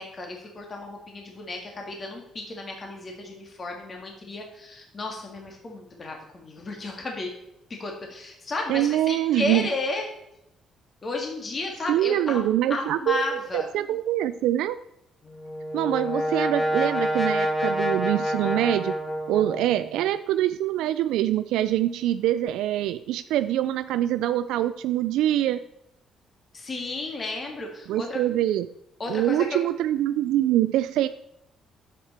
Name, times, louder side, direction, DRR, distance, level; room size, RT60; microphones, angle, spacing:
voice 1, 0.0-7.3 7.7-10.1 11.0-13.7 26.5-28.2 29.0-29.6, left 2 dB, 30° left, 1 dB, 1.7 m, -33 dB
voice 2, 8.7-9.7 11.9-14.8 15.7-19.0 19.3-25.6 27.9-28.7 29.1-31.1, right 13 dB, 90° right, 11 dB, 0.3 m, -24 dB
Brass instrument, 15.2-20.0, equal, 15° left, 1.5 m, -27 dB
10.0 x 7.4 x 4.3 m, 0.83 s
cardioid pair, 120°, 0 cm